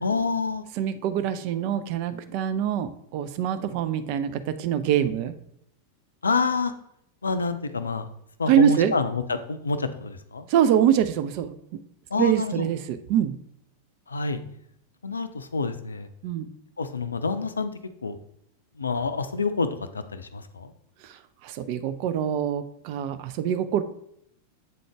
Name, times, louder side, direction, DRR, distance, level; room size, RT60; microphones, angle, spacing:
voice 1, 0.0-0.6 6.2-6.7 7.2-8.1 8.4-10.5 12.1-12.7 14.1-14.4 15.0-16.1 16.8-17.7 18.0-18.2 18.8-19.7 20.1-20.7, left 4 dB, 75° left, 11 dB, 0.4 m, -27 dB
voice 2, 0.8-5.3 8.5-8.9 10.5-11.8 12.2-13.4 16.2-16.5 21.4-23.8, right 9 dB, 45° right, 10 dB, 0.4 m, -24 dB
7.6 x 3.8 x 3.4 m, 0.72 s
figure-of-eight pair, 90°, 0 cm